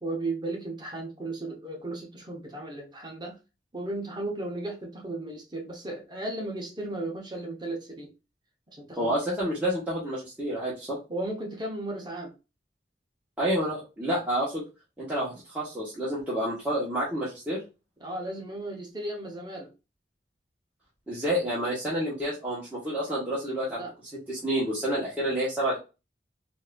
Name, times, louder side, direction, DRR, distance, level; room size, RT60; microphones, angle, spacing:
voice 1, 0.0-3.4 3.7-8.1 8.7-9.2 11.1-12.3 18.0-19.7 23.7-23.9, right 2 dB, 25° right, 0.8 m, -35 dB
voice 2, 9.0-11.0 13.4-14.6 15.0-17.6 21.1-23.8 24.3-25.8, equal, 10° right, 1.1 m, -29 dB
4.0 x 2.5 x 2.4 m
head